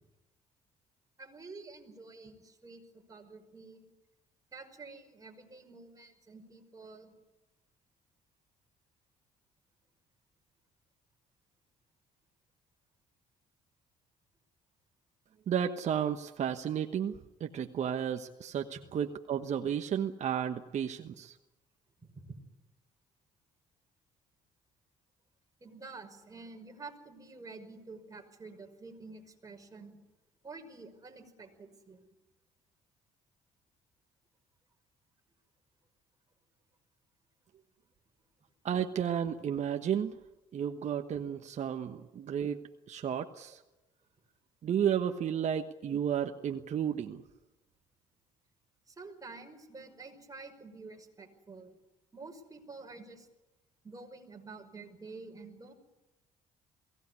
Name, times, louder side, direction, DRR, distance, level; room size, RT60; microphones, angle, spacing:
voice 1, 1.2-3.8 4.5-7.1 18.7-18.8 22.0-22.4 25.6-30.0 30.4-32.0 48.9-51.8 52.1-53.3 53.8-55.7, right 3 dB, 25° right, 3 dB, 5.6 m, -49 dB
voice 2, 15.5-21.4 38.6-40.2 40.5-43.6 44.6-47.2, right 8 dB, 55° right, 6 dB, 1.3 m, -33 dB
22.5 x 17.5 x 9.7 m, 1.0 s
supercardioid pair, 70°, 14 cm